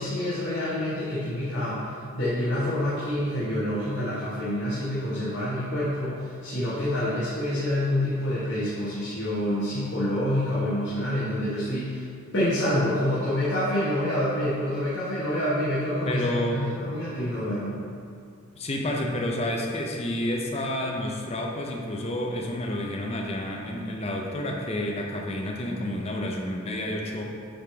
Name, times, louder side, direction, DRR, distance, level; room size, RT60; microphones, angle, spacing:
voice 1, 0.0-1.8 2.1-12.0 12.3-17.8, left 1 dB, 55° left, -11 dB, 1.6 m, -27 dB
voice 2, 16.0-16.7 18.6-27.2, left 1 dB, 30° left, 0 dB, 0.7 m, -30 dB
8.8 x 5.1 x 3.5 m, 2.3 s
head